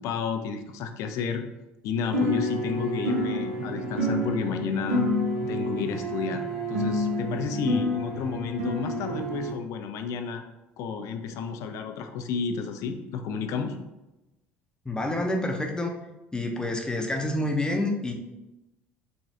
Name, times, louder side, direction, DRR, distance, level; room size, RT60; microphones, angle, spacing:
voice 1, 0.0-1.4 1.8-5.0 5.5-6.4 6.7-10.4 10.8-13.7, left 6 dB, 60° left, 7 dB, 0.4 m, -31 dB
sound 1, 2.1-9.5, left 1 dB, 75° right, 0.7 m, -28 dB
voice 2, 14.9-16.0 16.3-18.1, left 1 dB, 10° left, 2 dB, 0.6 m, -28 dB
3.2 x 2.3 x 2.8 m, 0.98 s
hypercardioid pair, 70°, 6 cm